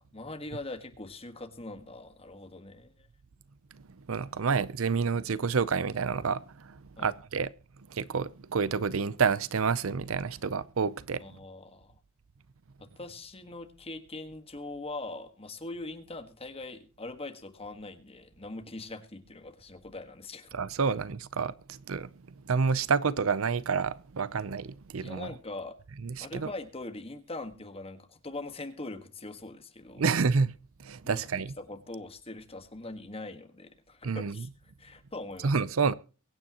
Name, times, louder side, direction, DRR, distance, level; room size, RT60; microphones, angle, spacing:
voice 1, 0.0-3.1 7.0-7.1 11.2-12.0 12.8-20.5 25.0-25.8 26.2-30.0 31.0-31.2 31.6-34.5 34.8-35.6, left 2 dB, 30° left, 1.6 m, -42 dB
voice 2, 4.1-7.5 7.9-11.2 20.5-22.1 22.5-25.3 26.0-26.5 30.0-30.5 30.8-31.5 34.0-34.5 35.4-35.9, right 5 dB, 70° right, 0.6 m, -29 dB
23.0 x 9.0 x 3.0 m
head